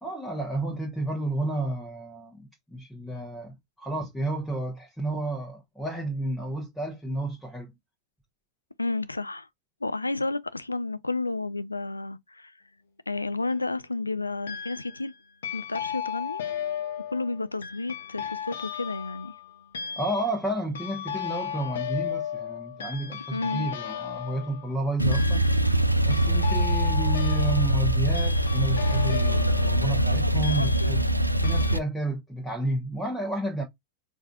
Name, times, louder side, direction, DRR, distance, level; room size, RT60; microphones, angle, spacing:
voice 1, 0.0-7.7 20.0-25.4 26.1-31.1 31.4-33.6, right 1 dB, 5° left, 1.0 m, -31 dB
voice 2, 8.8-9.5 9.8-12.5 13.1-15.1 15.5-16.4 17.1-19.3 23.3-23.7, left 3 dB, 80° left, 0.4 m, -31 dB
sound 1, 13.2-13.7 14.5-15.1 15.4-31.2 31.4-31.8, left 9 dB, 65° left, 0.8 m, -35 dB
Male speech man speaking / Car / Idling, 25.0-31.8, right 1 dB, 90° right, 0.3 m, -23 dB
4.7 x 2.6 x 2.2 m
figure-of-eight pair, 90°, 0 cm